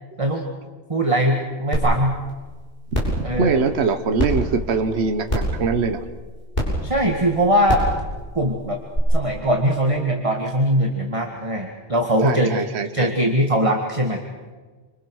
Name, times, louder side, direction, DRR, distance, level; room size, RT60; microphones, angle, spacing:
voice 1, 0.9-2.2 3.2-3.6 6.8-7.8 8.3-8.8 9.1-12.5 12.9-14.2, right 1 dB, 25° right, 1 dB, 2.0 m, -21 dB
sound 1, 1.7-1.8 2.3-2.4 2.9-3.2 4.2-4.3 5.3-5.6 6.5-6.6 7.6-7.9 8.9-9.0, equal, 35° left, 7.4 m, -22 dB
voice 2, 3.1-6.0 12.2-13.1, right 4 dB, 55° right, 7 dB, 1.4 m, -22 dB
28.0 x 25.5 x 6.4 m, 1.4 s
omnidirectional pair, 1.3 m